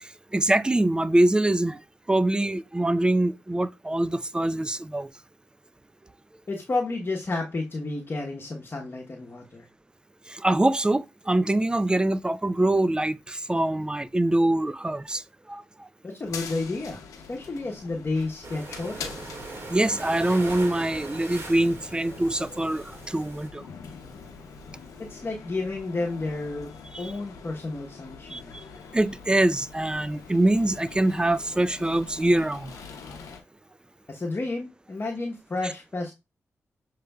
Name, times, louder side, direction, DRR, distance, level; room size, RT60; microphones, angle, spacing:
voice 1, 0.0-1.8 2.1-5.1 10.3-15.2 15.5-15.6 19.7-23.6 26.9-27.1 28.3-28.6 28.9-32.8, right 1 dB, 15° right, 0.4 m, -24 dB
voice 2, 6.5-9.7 16.0-17.0 17.3-19.1 25.0-26.7 27.0-28.6 34.1-36.1, left 3 dB, 40° left, 1.0 m, -31 dB
sound 1, 16.2-33.4, left 5 dB, 90° left, 0.7 m, -44 dB
sound 2, 18.4-23.5, right 2 dB, 55° right, 1.9 m, -40 dB
6.7 x 3.2 x 2.3 m
supercardioid pair, 50°, 5 cm